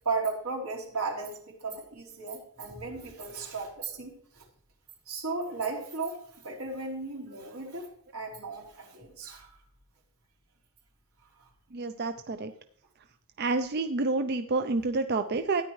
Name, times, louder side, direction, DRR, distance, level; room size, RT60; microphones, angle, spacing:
voice 1, 0.0-4.5 5.0-7.9 8.1-9.6 11.4-11.5, right 4 dB, 85° right, -2 dB, 3.4 m, -35 dB
voice 2, 11.7-12.5 13.4-15.6, right 3 dB, 45° right, 8 dB, 0.5 m, -29 dB
13.0 x 9.7 x 3.1 m, 0.64 s
head